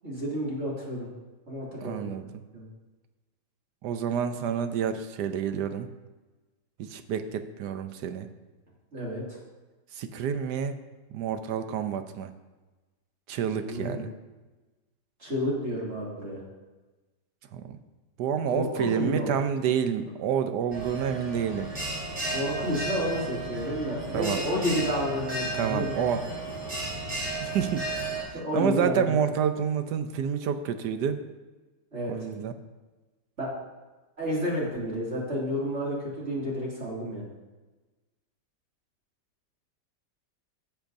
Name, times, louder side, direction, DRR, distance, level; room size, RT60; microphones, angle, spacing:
voice 1, 0.0-1.1 1.5-2.3 2.5-2.7 8.9-9.4 13.6-14.1 15.2-16.4 18.5-19.4 22.3-26.0 28.3-29.2 31.9-32.1 33.4-33.5 34.2-37.3, equal, 40° right, -5 dB, 2.8 m, -30 dB
voice 2, 1.8-2.3 3.8-5.9 6.8-8.3 9.9-10.8 11.1-12.3 13.3-14.1 17.5-17.8 18.2-21.7 24.1-24.4 25.5-26.3 27.4-27.9 28.2-31.2 32.1-32.5, right 7 dB, 70° right, 9 dB, 1.2 m, -29 dB
Bell, 20.7-28.2, right 2 dB, 25° right, 3.5 m, -33 dB
16.5 x 7.1 x 2.6 m, 1.2 s
omnidirectional pair, 1.9 m